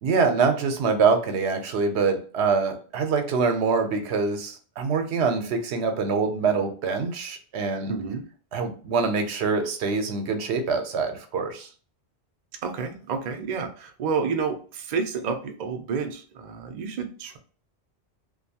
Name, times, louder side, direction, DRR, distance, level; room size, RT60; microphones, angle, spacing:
voice 1, 0.0-7.9 8.5-11.7, right 5 dB, 80° right, 6 dB, 0.9 m, -24 dB
voice 2, 7.9-8.3 12.6-17.4, right 5 dB, 55° right, 5 dB, 0.5 m, -30 dB
2.6 x 2.2 x 2.7 m, 0.39 s
omnidirectional pair, 1.1 m